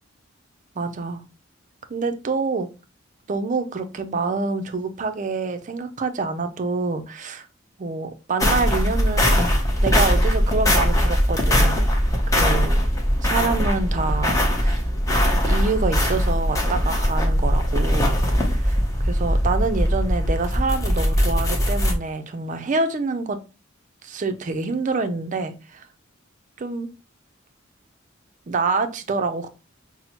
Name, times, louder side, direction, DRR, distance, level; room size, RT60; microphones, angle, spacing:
voice 1, 0.8-1.2 1.9-2.7 3.3-7.5 7.8-9.5 9.8-11.8 12.3-12.9 13.2-14.8 15.4-18.2 18.5-18.8 19.0-23.4 24.0-25.9 26.6-26.9 28.5-29.5, right 4 dB, 40° right, 9 dB, 0.4 m, -26 dB
sound 1, 8.4-21.9, equal, 15° left, 0.7 m, -20 dB
5.8 x 2.0 x 2.8 m, 0.31 s
head